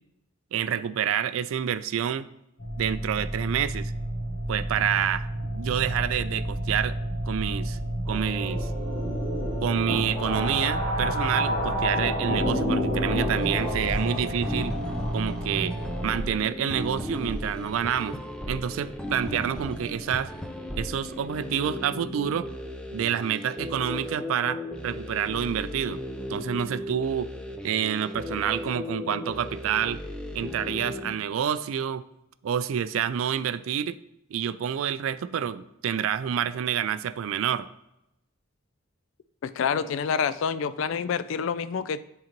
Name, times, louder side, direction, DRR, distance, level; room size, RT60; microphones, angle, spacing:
voice 1, 0.5-2.3 2.8-3.9 4.5-6.9 7.3-7.8 8.1-8.7 9.6-14.8 15.1-15.8 16.0-18.2 18.5-20.3 20.8-22.5 22.9-26.0 26.3-27.3 27.6-30.0 30.3-32.0 32.4-34.0 34.3-37.7, right 9 dB, 80° right, 14 dB, 0.3 m, -28 dB
sound 1, 2.6-16.1, right 1 dB, 45° left, 1.1 m, -31 dB
sound 2, 8.1-16.3, equal, 25° left, 2.1 m, -30 dB
sound 3, 13.3-31.1, left 1 dB, 5° left, 0.5 m, -36 dB
voice 2, 39.4-42.0, left 6 dB, 70° left, 14 dB, 0.3 m, -27 dB
10.5 x 3.9 x 2.9 m, 0.85 s
head